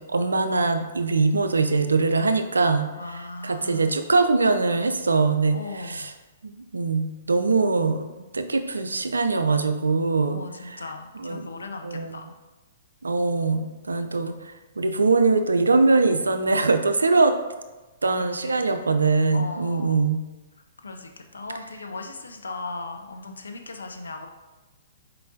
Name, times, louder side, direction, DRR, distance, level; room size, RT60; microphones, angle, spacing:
voice 1, 0.0-2.9 3.4-5.6 5.8-6.1 6.4-10.4 11.2-11.4 11.8-12.1 13.0-17.3 18.0-20.2, right 3 dB, 85° right, 8 dB, 0.4 m, -22 dB
voice 2, 3.0-3.9 5.5-6.1 10.3-12.3 18.1-18.7 19.3-20.1 20.8-24.3, left 3 dB, 80° left, 5 dB, 0.4 m, -38 dB
4.4 x 3.8 x 2.6 m, 1.1 s
figure-of-eight pair, 120°, 0 cm